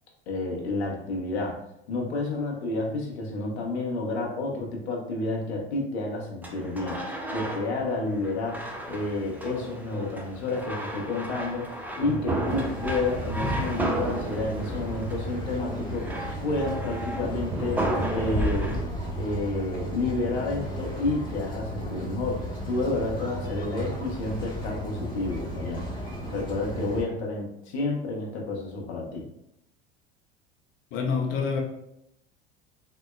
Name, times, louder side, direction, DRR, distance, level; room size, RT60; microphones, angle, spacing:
voice 1, 0.3-1.6 1.9-18.7 19.1-29.3, left 2 dB, 80° left, -1 dB, 0.7 m, -30 dB
sound 1, 6.4-18.8, right 1 dB, 5° right, 0.4 m, -33 dB
sound 2, 12.4-27.0, right 1 dB, 15° left, 1.1 m, -34 dB
voice 2, 30.9-31.6, left 5 dB, 45° left, 1 dB, 0.6 m, -26 dB
3.6 x 2.1 x 2.2 m, 0.79 s
hypercardioid pair, 75°, 32 cm